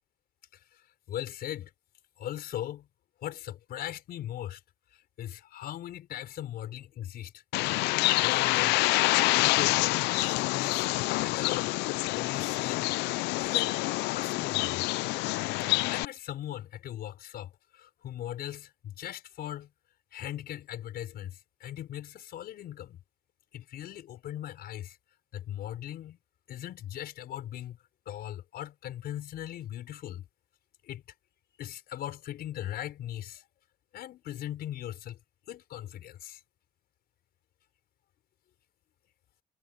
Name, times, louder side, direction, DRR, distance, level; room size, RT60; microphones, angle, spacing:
voice 1, 1.1-1.7 2.2-2.9 3.2-4.6 4.9-7.4 8.2-10.9 11.2-11.8 12.1-12.9 13.4-14.8 15.9-19.7 20.1-23.0 23.5-25.0 25.3-26.2 26.5-27.8 28.1-30.2 30.8-31.0 31.5-33.4 33.9-35.2 35.5-36.4, left 12 dB, 65° left, 5.5 m, -39 dB
Bird, 7.5-16.0, left 21 dB, 90° left, 0.4 m, -27 dB
cardioid pair, 110°, 17 cm